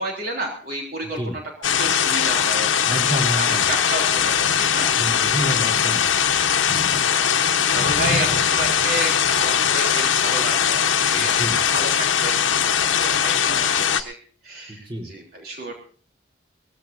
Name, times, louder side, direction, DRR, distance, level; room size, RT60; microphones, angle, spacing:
voice 1, 0.0-1.4 1.8-3.0 3.4-5.0 5.5-6.3 7.0-14.2 14.4-15.7, right 1 dB, 50° right, 0 dB, 3.5 m, -31 dB
sound 1, 1.6-14.0, left 8 dB, 85° left, 1.1 m, -20 dB
voice 2, 2.8-3.7 5.0-6.0 11.2-11.6 14.7-15.1, right 1 dB, 25° right, 0 dB, 4.2 m, -28 dB
20.5 x 15.5 x 2.7 m, 0.41 s
head